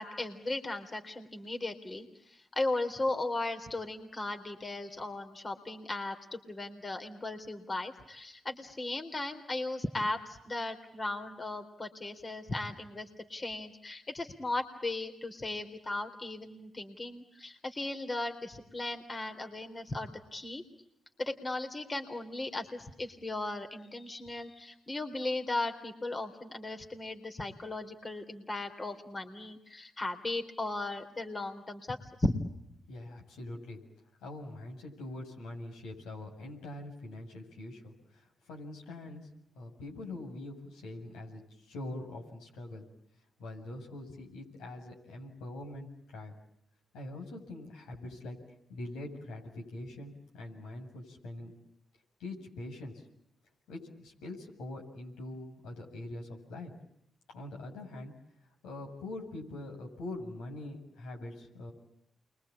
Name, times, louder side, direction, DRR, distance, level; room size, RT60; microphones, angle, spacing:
voice 1, 0.0-20.6 21.2-32.3, left 2 dB, 30° left, 6 dB, 3.8 m, -37 dB
voice 2, 32.9-33.8 34.2-39.3 39.5-42.9 43.4-46.3 46.9-48.4 48.7-51.5 52.2-53.0 53.7-56.7 57.3-58.1 58.6-61.7, left 2 dB, 90° left, 0 dB, 7.4 m, -43 dB
29.0 x 23.5 x 8.7 m, 0.81 s
supercardioid pair, 60°, 0 cm